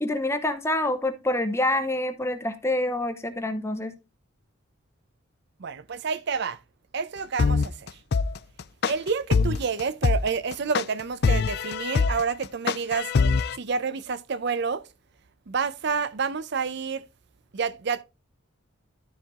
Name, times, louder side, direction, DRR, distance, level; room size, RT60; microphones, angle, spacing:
voice 1, 0.0-3.9, left 1 dB, 15° left, 0.8 m, -26 dB
voice 2, 5.6-6.6 6.9-7.9 8.9-13.1 13.5-14.8 15.5-17.0 17.5-18.0, right 5 dB, 55° right, 0.5 m, -29 dB
sound 1, 7.4-13.6, left 4 dB, 50° left, 0.4 m, -23 dB
13.0 x 4.5 x 3.6 m
head